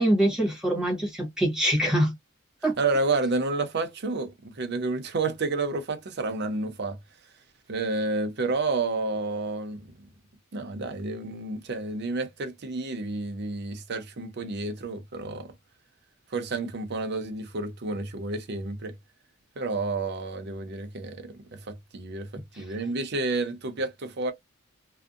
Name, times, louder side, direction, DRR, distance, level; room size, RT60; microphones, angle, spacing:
voice 1, 0.0-2.1 2.6-2.8 22.5-22.6, right 1 dB, 5° right, 1.0 m, -24 dB
voice 2, 2.8-7.0 7.7-10.1 10.5-15.5 16.3-18.9 19.6-24.3, right 3 dB, 55° right, 0.6 m, -30 dB
2.6 x 2.1 x 2.4 m
head